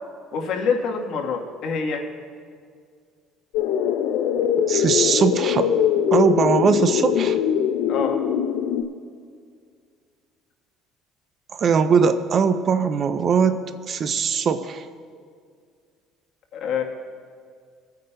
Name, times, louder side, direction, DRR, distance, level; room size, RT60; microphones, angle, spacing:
voice 1, 0.3-2.0 7.9-8.2 16.5-16.8, left 5 dB, 55° left, 2 dB, 1.3 m, -25 dB
sound 1, 3.5-8.8, left 9 dB, 80° left, 0.5 m, -22 dB
voice 2, 4.7-5.7 6.1-7.4 11.5-14.9, right 6 dB, 35° right, 11 dB, 0.4 m, -20 dB
22.5 x 9.2 x 2.2 m, 2.1 s
cardioid pair, 155°, 0 cm